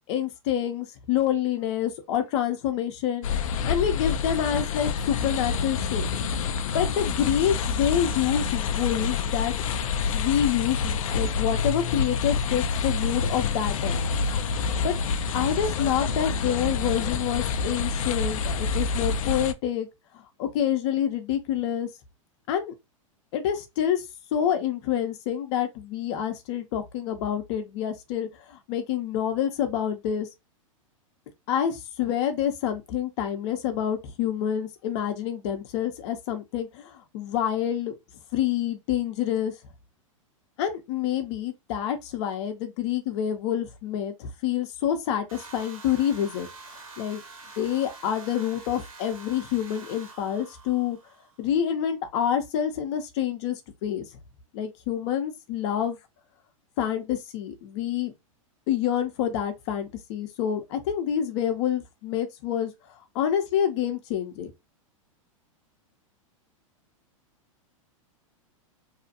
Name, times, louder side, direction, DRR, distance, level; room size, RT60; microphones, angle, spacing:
voice 1, 0.1-6.1 6.7-9.5 10.1-14.1 14.8-15.0 15.3-19.9 20.1-21.9 22.5-22.7 23.3-24.1 24.3-30.3 31.5-37.9 38.3-39.5 40.6-46.5 47.0-47.2 47.6-51.0 51.4-54.0 54.5-56.0 56.8-58.1 58.7-62.7 63.1-64.5, left 9 dB, 55° left, 0.8 m, -27 dB
sound 1, 3.2-19.5, left 5 dB, 75° left, 0.4 m, -27 dB
sound 2, 45.3-51.4, right 3 dB, 85° right, 1.3 m, -46 dB
2.8 x 2.4 x 2.7 m
hypercardioid pair, 105°, 17 cm